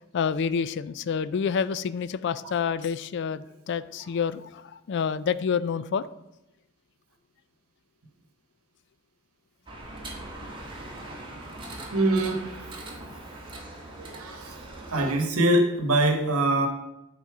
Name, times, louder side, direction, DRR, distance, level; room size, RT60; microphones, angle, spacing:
voice 1, 0.1-6.0, left 6 dB, 50° left, 16 dB, 0.3 m, -28 dB
sound 1, 9.7-15.1, right 1 dB, 25° right, 1.5 m, -41 dB
voice 2, 11.6-12.4 14.0-14.6 14.9-16.7, right 1 dB, 80° right, 4 dB, 1.1 m, -24 dB
10.0 x 4.0 x 4.7 m, 0.91 s
head